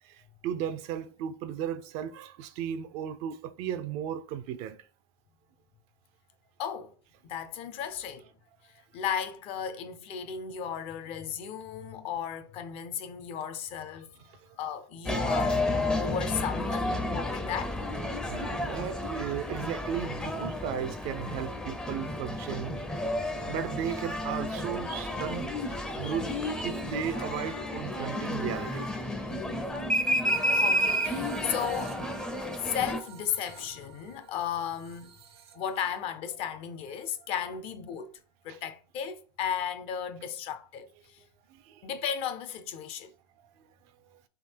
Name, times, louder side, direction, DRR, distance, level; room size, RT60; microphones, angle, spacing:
voice 1, 0.0-4.8 14.3-14.5 18.3-22.7 23.5-28.9 34.0-34.2 35.5-35.6 38.5-38.6 41.5-41.9, right 9 dB, 50° right, 0.5 m, -35 dB
voice 2, 6.6-6.9 7.2-8.3 8.9-14.1 14.6-15.6 16.0-17.0 17.3-17.8 29.4-29.5 30.5-32.0 32.6-35.1 35.5-38.1 38.4-41.2 41.8-43.1, left 8 dB, 45° left, 0.7 m, -35 dB
sound 1, 15.1-33.0, left 1 dB, 5° left, 0.6 m, -31 dB
sound 2, 30.2-36.0, right 6 dB, 80° right, 0.9 m, -45 dB
3.8 x 2.8 x 4.4 m
hypercardioid pair, 115°, 13 cm